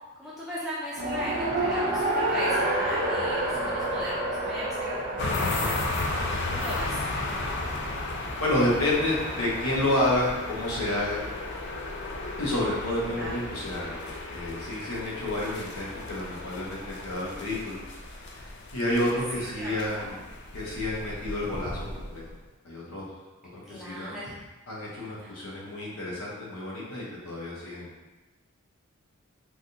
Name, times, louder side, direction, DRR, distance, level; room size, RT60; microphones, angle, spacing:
voice 1, 0.2-5.8 6.4-7.0 13.1-13.3 19.3-20.2 23.6-24.4 25.2-25.4, equal, ahead, -11 dB, 0.5 m, -37 dB
Race car auto racing, 1.0-10.0, right 1 dB, 45° right, 0.6 m, -30 dB
sound 1, 5.2-22.4, left 2 dB, 55° left, 0.4 m, -34 dB
voice 2, 7.8-11.2 12.4-14.0 14.3-17.8 18.1-20.2 20.5-22.2 22.6-23.1 23.5-24.1 24.7-27.9, left 1 dB, 85° left, -5 dB, 0.9 m, -30 dB
3.4 x 2.3 x 2.7 m, 1.1 s
head